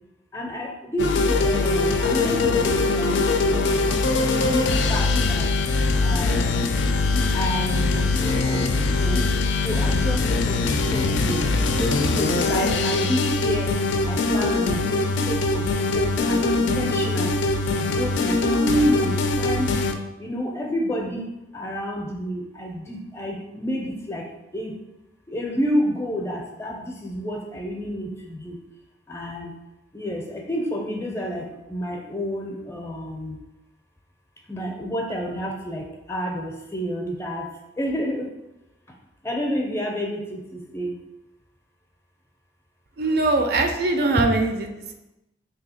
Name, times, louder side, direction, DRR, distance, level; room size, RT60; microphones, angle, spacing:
voice 1, 0.3-3.9 4.3-5.5 6.0-6.7 7.3-9.3 9.6-10.6 10.9-11.5 11.8-13.7 14.0-17.4 17.7-19.8 20.2-21.3 21.5-24.8 25.3-28.6 29.1-29.5 29.9-33.4 34.5-37.5 37.8-38.3 39.2-41.0 44.2-44.3, equal, 15° left, 1 dB, 0.5 m, -29 dB
sound 1, 1.0-19.9, left 3 dB, 70° left, 0.3 m, -22 dB
voice 2, 43.0-44.9, right 2 dB, 55° right, 5 dB, 0.4 m, -22 dB
3.1 x 2.8 x 4.1 m, 0.94 s
head